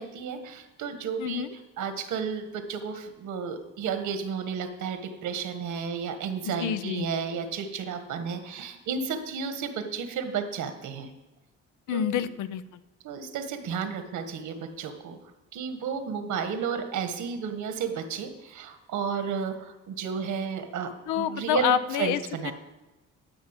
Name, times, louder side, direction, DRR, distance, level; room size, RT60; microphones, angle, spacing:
voice 1, 0.0-1.4 1.8-11.1 11.9-12.3 13.0-15.2 15.5-22.5, right 6 dB, 80° right, 7 dB, 1.5 m, -32 dB
voice 2, 1.2-1.5 6.4-7.1 11.9-12.8 21.1-22.5, left 10 dB, 90° left, 13 dB, 0.6 m, -28 dB
12.0 x 5.4 x 8.2 m, 1.0 s
cardioid pair, 90°, 30 cm